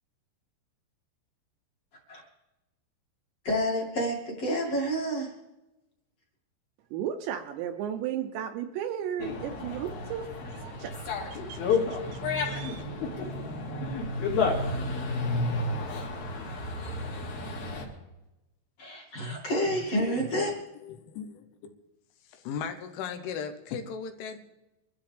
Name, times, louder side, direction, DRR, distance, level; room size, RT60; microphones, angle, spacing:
voice 1, 3.4-5.3 18.8-20.5, equal, 40° left, -2 dB, 2.7 m, -29 dB
voice 2, 6.9-12.9, right 9 dB, 80° right, 6 dB, 2.7 m, -35 dB
Dog, 9.2-17.9, left 3 dB, 55° left, 3.9 m, -31 dB
voice 3, 20.8-21.7 22.3-24.4, left 6 dB, 80° left, 7 dB, 3.5 m, -37 dB
24.0 x 13.0 x 3.5 m, 0.98 s
omnidirectional pair, 5.6 m